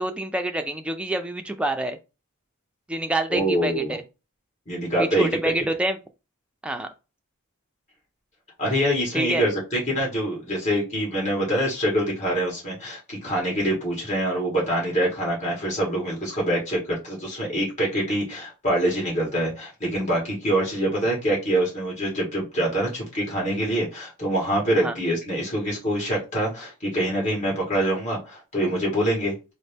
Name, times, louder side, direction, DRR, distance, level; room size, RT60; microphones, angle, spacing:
voice 1, 0.0-2.0 2.9-4.0 5.1-6.0 6.6-6.9 9.1-9.5 24.8-25.0, right 1 dB, 5° right, 0.4 m, -27 dB
voice 2, 3.3-3.9 4.7-5.3 8.6-29.3, right 1 dB, 35° left, 1.8 m, -25 dB
4.0 x 2.1 x 3.5 m
head